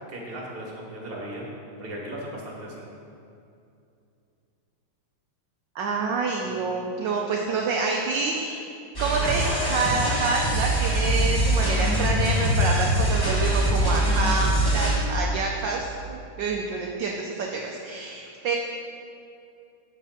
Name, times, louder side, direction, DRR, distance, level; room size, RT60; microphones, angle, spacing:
voice 1, 0.0-1.5 1.8-2.9, right 1 dB, 25° right, -4 dB, 2.1 m, -37 dB
voice 2, 5.7-8.6 9.0-18.6, right 4 dB, 65° right, 0 dB, 1.3 m, -27 dB
sound 1, 9.0-15.0, right 1 dB, 10° left, 1.7 m, -23 dB
12.5 x 7.1 x 4.3 m, 2.6 s
omnidirectional pair, 2.4 m